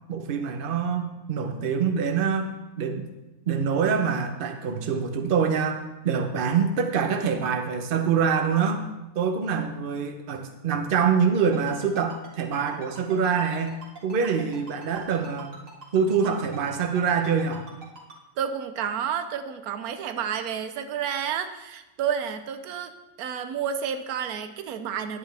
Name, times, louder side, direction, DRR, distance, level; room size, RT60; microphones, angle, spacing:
voice 1, 0.1-2.5 2.8-3.1 3.5-8.8 9.1-15.6 15.9-17.7, right 6 dB, 45° right, 6 dB, 0.9 m, -25 dB
Ringtone, 11.4-18.1, right 3 dB, 60° right, 2.2 m, -44 dB
voice 2, 18.4-25.2, right 8 dB, 85° right, 9 dB, 1.1 m, -30 dB
10.0 x 9.3 x 3.3 m, 1.0 s
omnidirectional pair, 1.6 m